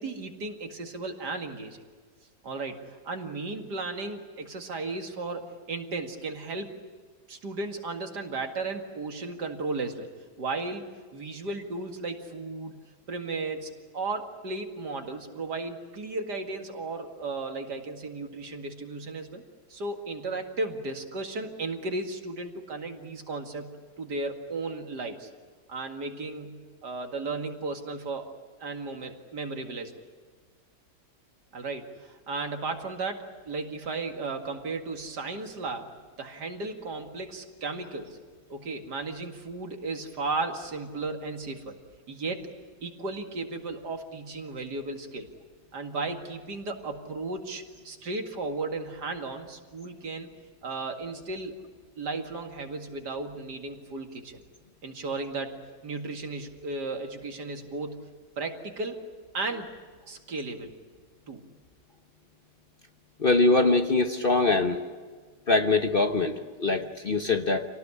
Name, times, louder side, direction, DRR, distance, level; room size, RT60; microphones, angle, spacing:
voice 1, 0.0-1.8 2.4-6.7 7.3-10.1 10.4-12.8 13.1-19.4 19.7-25.3 25.7-28.3 28.6-29.9 31.5-35.9 36.2-38.2 38.5-41.8 42.1-42.5 42.8-45.3 45.7-50.3 50.6-51.5 52.0-54.4 54.8-58.0 58.4-59.7 60.1-60.7 61.3-61.4, right 3 dB, 70° right, 4 dB, 2.7 m, -35 dB
voice 2, 63.2-64.8 65.5-67.7, left 3 dB, 40° left, 6 dB, 1.0 m, -23 dB
27.5 x 18.5 x 9.8 m, 1.5 s
omnidirectional pair, 1.8 m